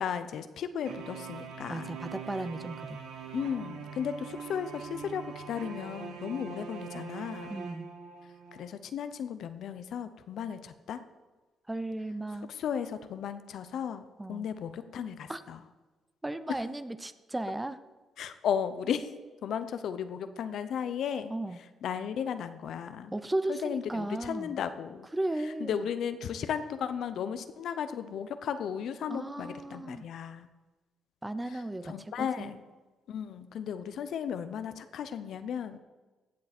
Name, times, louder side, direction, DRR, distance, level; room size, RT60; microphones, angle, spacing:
voice 1, 0.0-1.9 3.3-7.6 8.5-11.0 12.5-15.6 18.2-19.1 19.4-21.3 21.8-23.1 23.5-25.1 25.6-30.5 31.5-32.6 33.1-35.8, left 8 dB, 70° left, 11 dB, 0.8 m, -35 dB
sound 1, 0.8-8.6, right 6 dB, 85° right, 1.4 m, -43 dB
voice 2, 1.7-3.0 7.5-7.9 11.7-12.5 14.2-14.5 15.3-15.4 16.2-17.8 21.3-21.6 23.1-24.6 25.1-25.9 29.1-30.1 31.2-32.5, right 1 dB, 15° right, 13 dB, 0.6 m, -35 dB
16.0 x 7.6 x 4.4 m, 1.2 s
cardioid pair, 90°, 0 cm